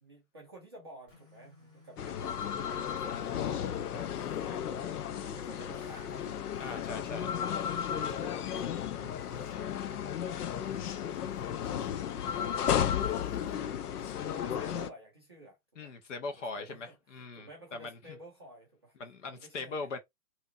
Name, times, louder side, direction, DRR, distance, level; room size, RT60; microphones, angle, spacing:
voice 1, 0.0-6.3 6.7-7.5 7.9-11.2 11.5-13.6 14.2-15.9 16.4-19.0 19.2-19.9, right 1 dB, 20° right, 0.4 m, -53 dB
sound 1, 1.1-4.7 5.7-7.1 7.6-9.9 10.6-14.5, equal, 20° left, 1.3 m, -60 dB
sound 2, 2.0-14.9, left 9 dB, 85° left, 0.6 m, -34 dB
voice 2, 6.6-7.3 15.8-18.2 19.0-20.0, left 3 dB, 55° left, 1.2 m, -40 dB
3.3 x 2.9 x 2.5 m
hypercardioid pair, 155°, 45 cm